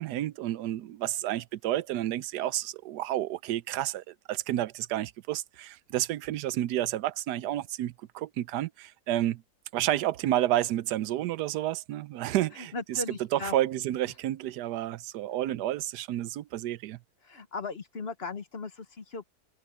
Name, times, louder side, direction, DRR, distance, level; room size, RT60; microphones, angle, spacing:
voice 1, 0.0-9.4 9.7-13.0 13.3-17.0, right 13 dB, 85° right, 1.2 m, -30 dB
voice 2, 12.6-13.5 17.2-19.2, left 3 dB, 45° left, 1.2 m, -37 dB
omnidirectional pair, 1.7 m